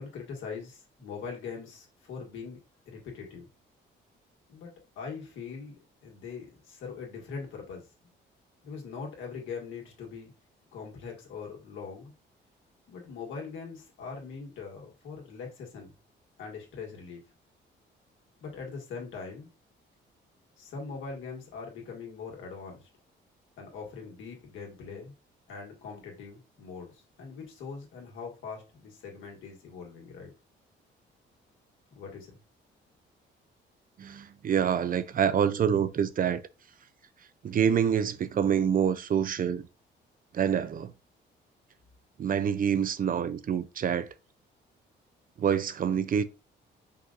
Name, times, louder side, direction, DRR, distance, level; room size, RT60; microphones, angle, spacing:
voice 1, 0.0-2.6 2.9-3.5 4.5-7.9 8.6-10.3 10.7-12.1 12.9-15.9 16.4-17.2 18.4-19.5 20.6-22.9 23.6-25.1 25.5-30.3 32.0-32.4, left 5 dB, 85° left, 2.0 m, -42 dB
voice 2, 34.0-36.4 37.4-39.7 40.3-40.9 42.2-44.1 45.4-46.2, right 8 dB, 45° right, 0.5 m, -26 dB
5.4 x 2.6 x 3.8 m
cardioid pair, 90°, 20 cm